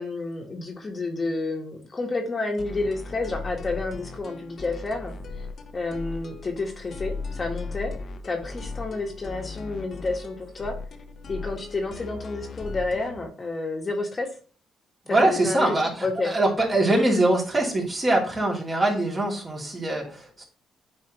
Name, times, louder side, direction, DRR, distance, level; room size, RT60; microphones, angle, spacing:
voice 1, 0.0-5.1 5.7-7.9 8.2-10.8 11.3-14.3 15.2-15.7 16.0-16.3, left 3 dB, 30° left, 2 dB, 1.3 m, -30 dB
sound 1, 2.6-13.2, left 4 dB, 50° left, 0.8 m, -37 dB
voice 2, 15.1-20.4, right 2 dB, 30° right, -1 dB, 2.8 m, -23 dB
9.4 x 4.3 x 3.0 m, 0.40 s
cardioid pair, 90°, 0 cm